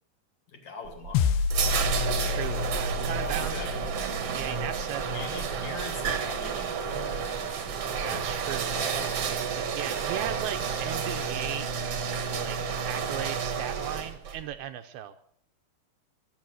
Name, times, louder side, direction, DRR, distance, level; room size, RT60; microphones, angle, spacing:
voice 1, 0.5-1.3 3.1-3.8 5.1-8.2 8.7-9.3, left 4 dB, 50° left, 2 dB, 2.9 m, -42 dB
sound 1, 0.8-14.4, right 6 dB, 60° right, 1.7 m, -31 dB
sound 2, 1.1-5.7, left 6 dB, 75° left, 2.7 m, -30 dB
voice 2, 2.0-3.6 4.3-5.5 8.0-8.8 9.6-15.2, right 11 dB, 80° right, 8 dB, 2.5 m, -37 dB
23.0 x 8.3 x 6.3 m, 0.65 s
omnidirectional pair, 4.9 m